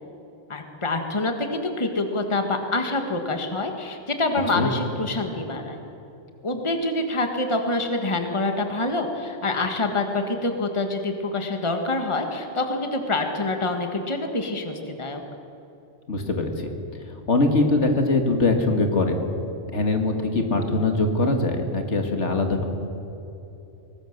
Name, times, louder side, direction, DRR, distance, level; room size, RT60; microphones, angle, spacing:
voice 1, 0.5-5.8 6.4-15.2, left 2 dB, 25° left, 4 dB, 1.7 m, -26 dB
voice 2, 16.1-16.7 17.1-19.3 19.7-22.6, left 2 dB, 65° left, 4 dB, 2.2 m, -22 dB
22.5 x 19.5 x 6.7 m, 3.0 s
omnidirectional pair, 1.3 m